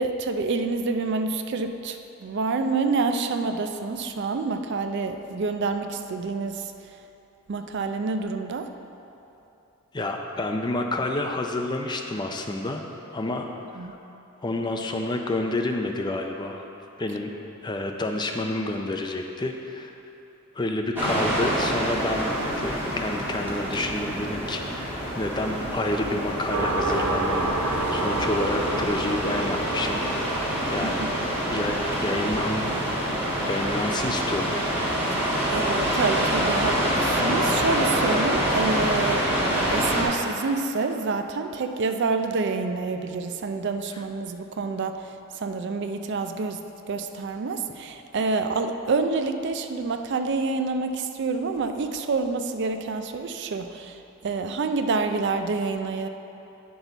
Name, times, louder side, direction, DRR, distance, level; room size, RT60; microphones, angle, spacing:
voice 1, 0.0-6.7 7.5-8.7 13.8-13.9 30.8-31.1 35.1-56.1, right 4 dB, 50° right, 7 dB, 0.4 m, -28 dB
voice 2, 9.9-12.9 13.1-13.4 13.9-14.0 14.4-16.7 17.0-17.3 17.6-19.9 20.5-31.0 31.5-32.7 33.4-34.7 43.9-44.0, left 2 dB, 20° left, 3 dB, 0.4 m, -29 dB
sound 1, 21.0-40.0, equal, 10° right, 1.2 m, -26 dB
sound 2, 26.5-35.8, right 2 dB, 80° right, 1.6 m, -31 dB
9.6 x 6.2 x 3.9 m, 3.0 s
head